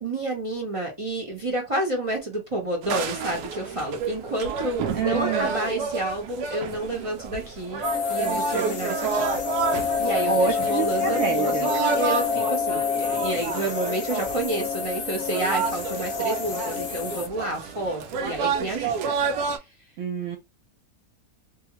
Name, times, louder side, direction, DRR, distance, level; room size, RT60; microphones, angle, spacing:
voice 1, 0.0-9.2 9.5-19.1 19.6-19.7, right 1 dB, 35° right, 0.5 m, -30 dB
sound 1, 2.8-19.6, right 6 dB, 90° right, 1.1 m, -30 dB
voice 2, 4.9-5.6 10.3-11.7 20.0-20.4, right 6 dB, 65° right, 0.8 m, -27 dB
sound 2, 7.8-17.3, left 7 dB, 60° left, 0.7 m, -28 dB
2.7 x 2.4 x 2.8 m
omnidirectional pair, 1.6 m